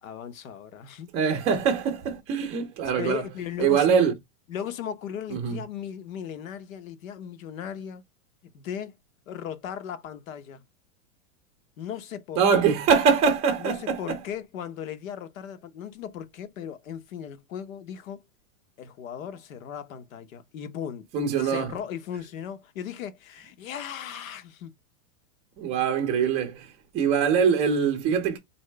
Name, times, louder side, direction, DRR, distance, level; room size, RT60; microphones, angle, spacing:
voice 1, 0.0-1.1 2.9-4.0 4.5-8.0 8.5-9.0 9.3-10.6 11.8-12.4 13.6-18.2 18.8-21.1 21.4-24.7, left 8 dB, 70° left, 1.1 m, -37 dB
voice 2, 1.1-3.2 3.6-4.1 5.3-5.6 12.4-14.2 21.1-21.7 25.6-26.7 26.9-28.4, right 6 dB, 15° right, 0.6 m, -23 dB
4.3 x 2.7 x 3.3 m
supercardioid pair, 170°, 42 cm